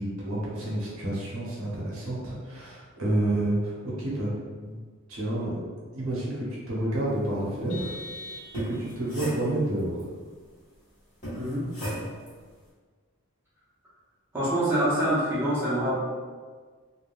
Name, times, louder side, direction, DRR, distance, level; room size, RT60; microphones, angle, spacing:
voice 1, 0.0-4.3 4.6-4.7 5.1-5.6 5.9-8.0 8.7-10.1, right 1 dB, 75° right, -6 dB, 0.9 m, -29 dB
Vehicle horn car horn honking, 7.7-9.1, left 1 dB, 75° left, 0.4 m, -42 dB
sound 1, 8.4-10.0 11.2-12.4, equal, 35° left, 1.2 m, -36 dB
voice 2, 11.3-11.7 14.3-16.0, right 1 dB, 10° right, -10 dB, 0.8 m, -25 dB
3.4 x 2.3 x 2.4 m, 1.5 s
head